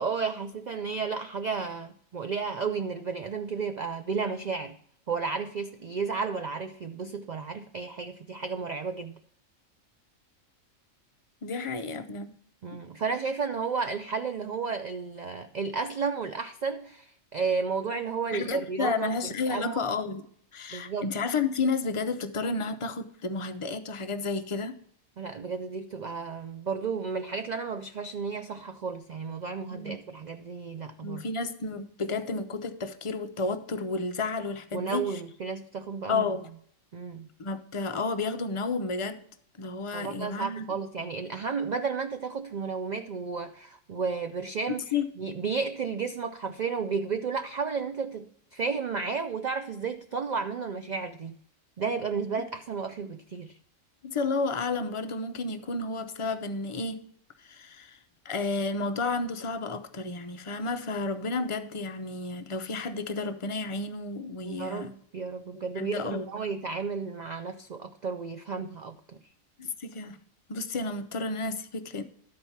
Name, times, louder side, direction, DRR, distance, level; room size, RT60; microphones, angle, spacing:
voice 1, 0.0-4.8 5.1-9.1 12.6-19.8 20.7-21.1 25.2-31.3 34.7-36.3 36.9-37.3 39.9-51.4 51.8-53.6 64.4-69.2, right 5 dB, 85° right, 8 dB, 0.4 m, -33 dB
voice 2, 11.4-12.3 12.7-12.8 18.3-24.8 29.7-30.0 31.0-35.1 36.1-36.5 37.4-39.2 39.6-40.6 44.9-45.1 54.0-57.0 57.4-58.0 58.2-64.9 65.5-66.3 69.6-70.2 70.5-72.0, left 3 dB, 50° left, 8 dB, 0.4 m, -31 dB
12.0 x 4.6 x 5.6 m, 0.63 s
omnidirectional pair, 1.4 m